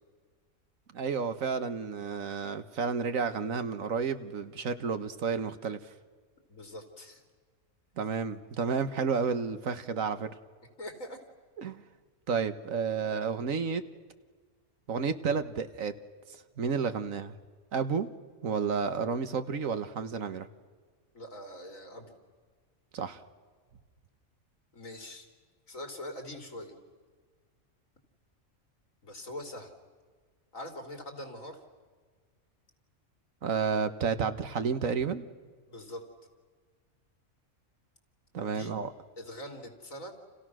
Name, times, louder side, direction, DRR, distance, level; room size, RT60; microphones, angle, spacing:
voice 1, 0.9-5.8 8.0-10.3 11.6-11.8 12.3-13.8 14.9-15.9 16.6-17.3 17.7-18.1 18.4-20.5 22.9-23.2 33.4-35.3 38.3-38.9, right 5 dB, 85° right, 10 dB, 1.7 m, -31 dB
voice 2, 6.5-7.2 10.8-11.2 21.1-22.2 24.7-25.3 25.7-26.8 29.0-29.8 30.5-31.6 35.7-36.0 38.4-38.7 39.2-40.1, left 1 dB, 80° left, 4 dB, 3.8 m, -43 dB
30.0 x 29.0 x 6.3 m, 1.5 s
omnidirectional pair, 1.4 m